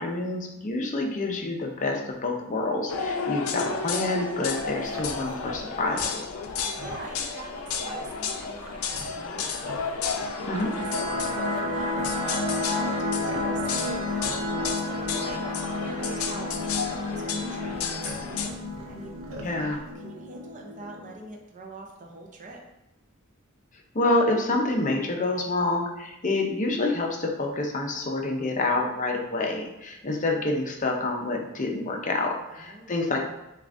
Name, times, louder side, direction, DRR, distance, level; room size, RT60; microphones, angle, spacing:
voice 1, 0.0-6.2 10.5-10.7 19.4-19.8 23.9-33.2, left 2 dB, 35° left, 1 dB, 0.6 m, -27 dB
voice 2, 0.9-1.2 6.5-12.2 12.5-19.2 19.6-22.6 32.5-33.0, right 2 dB, 35° right, 0 dB, 0.5 m, -44 dB
sound 1, 2.9-18.5, left 5 dB, 85° left, 0.4 m, -32 dB
sound 2, 4.5-19.9, right 1 dB, 75° right, 0.7 m, -45 dB
sound 3, 10.1-21.1, left 1 dB, 55° right, 1.1 m, -32 dB
6.7 x 2.4 x 2.5 m, 0.92 s
head